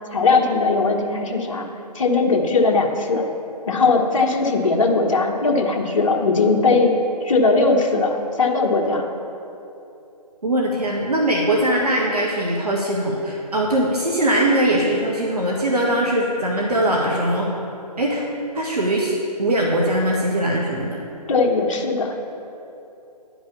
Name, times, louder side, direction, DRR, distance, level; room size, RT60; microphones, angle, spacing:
voice 1, 0.1-1.7 1.9-3.2 3.7-6.9 7.2-9.1 21.3-22.1, left 3 dB, 50° left, 1 dB, 1.2 m, -19 dB
voice 2, 10.4-17.5 18.0-18.2 18.5-19.1 19.4-21.0, right 1 dB, 65° right, -2 dB, 1.6 m, -21 dB
11.0 x 5.2 x 7.2 m, 2.8 s
figure-of-eight pair, 150°, 21 cm